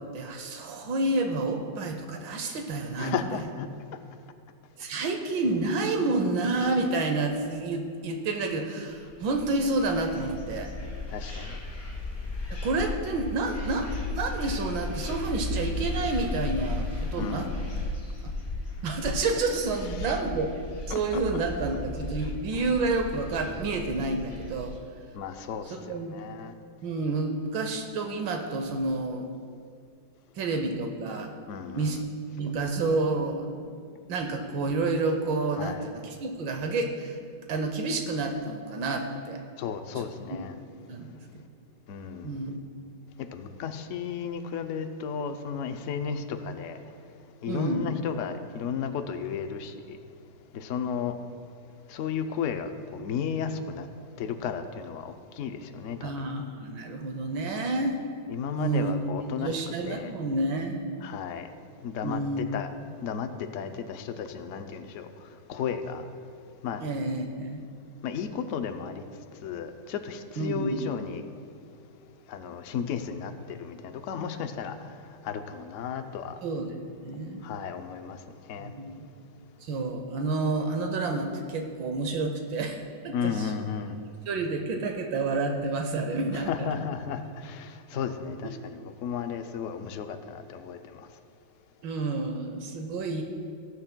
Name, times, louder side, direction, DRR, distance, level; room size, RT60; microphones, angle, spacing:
voice 1, 0.1-3.2 4.8-10.7 12.5-13.9 14.1-17.5 18.2-18.3 18.8-20.5 20.9-24.7 25.8-26.2 26.8-29.3 30.3-31.3 31.7-32.0 32.4-33.7 34.1-37.2 37.5-39.4 40.0-40.1 40.9-41.1 42.2-42.6 47.5-47.9 56.0-58.0 58.5-58.9 59.4-60.8 62.0-62.5 66.8-67.6 70.4-70.8 76.4-77.5 78.6-79.1 79.6-83.5 84.3-86.7 91.8-93.2, right 3 dB, 85° right, 4 dB, 1.5 m, -29 dB
voice 2, 3.0-3.7 11.1-11.6 17.2-17.7 20.0-20.2 20.9-21.2 22.2-22.3 25.1-26.5 31.5-32.0 35.6-35.9 39.6-40.6 41.9-42.4 43.2-46.8 47.4-50.0 50.5-51.2 51.9-53.9 54.2-56.3 58.3-60.2 61.0-61.5 61.8-62.7 63.0-66.0 66.6-66.8 68.0-69.1 69.4-71.2 72.3-76.4 77.4-78.2 78.5-78.7 83.1-84.0 86.3-91.1, left 7 dB, 75° left, 7 dB, 0.7 m, -34 dB
sound 1, 9.1-24.8, left 2 dB, 35° left, 2.8 m, -35 dB
20.0 x 8.0 x 2.2 m, 2.3 s
omnidirectional pair, 2.0 m